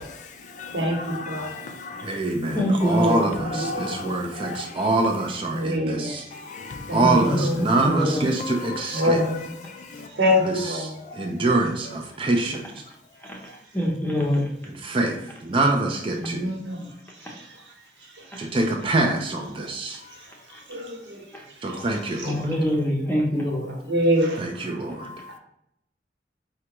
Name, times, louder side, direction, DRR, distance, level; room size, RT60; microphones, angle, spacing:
voice 1, 0.0-2.2 3.0-4.9 6.3-7.2 7.7-8.0 8.4-9.1 9.6-10.2 11.1-11.3 13.5-13.6 20.0-20.2 21.7-21.8 25.0-25.4, left 3 dB, 40° left, 0.3 m, -37 dB
voice 2, 0.7-1.5 2.5-3.2 3.5-4.1 5.5-6.2 6.9-7.9 8.9-9.5 10.1-11.1 16.2-17.6 18.0-18.5 20.2-20.4 20.7-21.8 22.2-22.3 23.9-24.8, equal, 85° right, 1.1 m, -27 dB
voice 3, 2.0-6.2 6.9-9.2 10.4-12.6 14.7-16.5 18.4-20.0 21.6-22.6 24.4-25.1, right 2 dB, 30° right, 0.4 m, -25 dB
voice 4, 2.6-3.3 7.0-7.4 7.9-8.3 13.2-13.4 13.7-14.5 17.2-17.3 18.3-18.5 20.5-20.6 21.3-21.4 22.2-23.7, equal, 10° left, 0.6 m, -24 dB
4.7 x 2.2 x 2.9 m
head